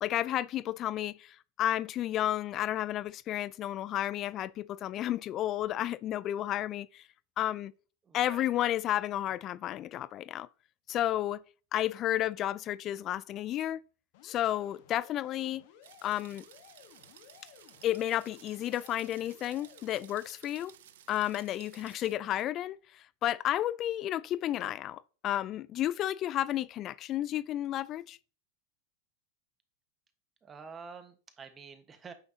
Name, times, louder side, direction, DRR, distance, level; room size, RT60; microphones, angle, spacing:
voice 1, 0.0-7.0 7.4-7.7 8.1-10.5 10.9-11.4 11.7-13.8 14.2-15.6 16.0-16.4 17.8-20.7 21.1-28.2, left 12 dB, 40° left, 0.4 m, -32 dB
voice 2, 8.0-8.7 30.4-32.1, right 5 dB, 25° right, 1.3 m, -48 dB
sound 1, 14.1-20.0, left 9 dB, 60° left, 1.2 m, -57 dB
sound 2, 15.8-22.1, right 11 dB, 70° right, 0.6 m, -56 dB
8.8 x 5.9 x 2.8 m
hypercardioid pair, 95°, 0 cm